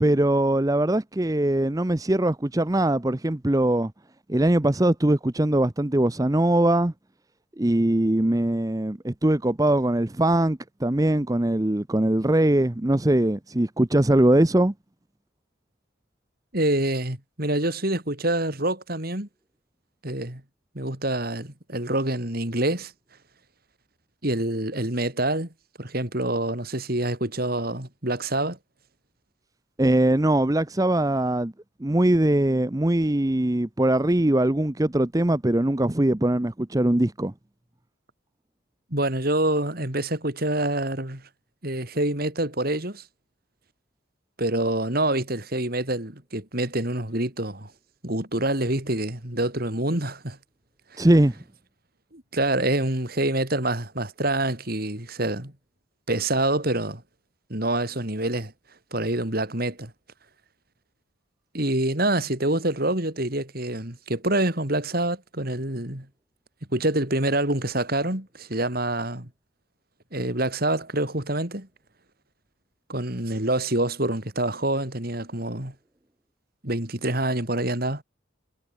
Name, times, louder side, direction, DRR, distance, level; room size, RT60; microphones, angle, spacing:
voice 1, 0.0-3.9 4.3-6.9 7.6-14.7 29.8-31.5 31.8-37.3 51.0-51.4, right 1 dB, 15° right, 0.7 m, -21 dB
voice 2, 16.5-19.3 20.0-20.4 20.8-22.9 24.2-25.5 25.8-28.6 38.9-41.2 41.6-43.0 44.4-47.7 48.0-50.4 50.9-51.0 52.1-55.5 56.1-57.0 57.5-58.5 58.9-59.9 61.5-66.1 66.7-69.3 70.1-71.7 72.9-75.7 76.6-78.0, right 1 dB, 45° right, 3.7 m, -26 dB
head